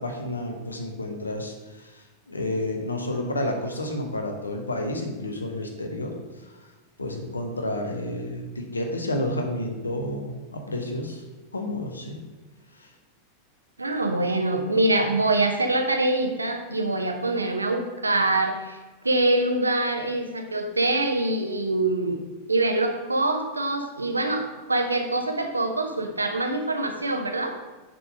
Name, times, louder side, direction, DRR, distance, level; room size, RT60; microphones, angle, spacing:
voice 1, 0.0-6.5 7.0-11.2 11.5-12.2 12.7-12.9, left 1 dB, 75° left, 3 dB, 0.9 m, -30 dB
voice 2, 13.8-18.8 19.0-22.2 22.5-27.5, right 2 dB, 80° right, 4 dB, 0.7 m, -24 dB
6.9 x 3.9 x 4.9 m, 1.2 s
figure-of-eight pair, 90°, 0 cm